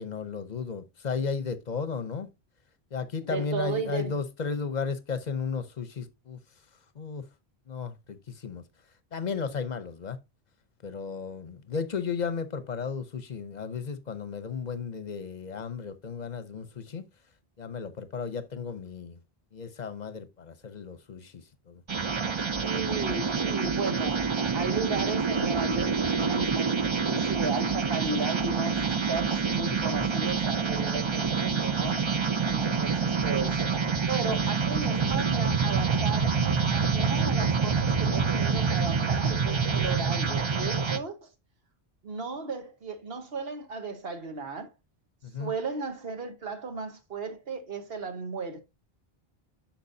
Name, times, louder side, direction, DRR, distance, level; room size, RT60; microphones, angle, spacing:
voice 1, 0.0-2.3 2.9-6.4 7.0-7.2 7.7-8.6 9.1-10.2 10.8-17.0 17.6-19.2 19.5-21.8 32.5-32.9 45.2-45.5, left 5 dB, 45° left, 0.8 m, -34 dB
voice 2, 3.3-4.1 22.6-32.1 32.5-33.6 34.1-41.3 42.0-44.7 45.4-48.6, right 4 dB, 70° right, 1.4 m, -35 dB
sound 1, 21.9-41.0, right 5 dB, 35° right, 0.6 m, -27 dB
8.4 x 5.9 x 2.7 m
omnidirectional pair, 1.1 m